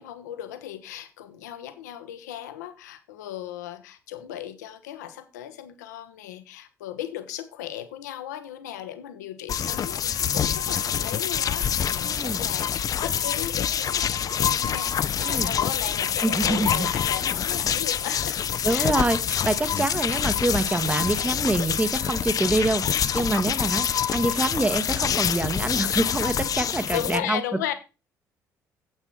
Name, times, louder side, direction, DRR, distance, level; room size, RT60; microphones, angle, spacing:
voice 1, 0.0-18.4 18.6-19.0 26.9-27.7, left 11 dB, 70° left, 0.9 m, -36 dB
sound 1, 9.5-27.2, left 8 dB, 40° left, 0.5 m, -26 dB
voice 2, 12.0-12.4 15.2-15.5 16.2-16.9 18.6-27.4, right 2 dB, 15° right, 1.0 m, -26 dB
8.9 x 8.1 x 4.5 m
figure-of-eight pair, 45°, 9 cm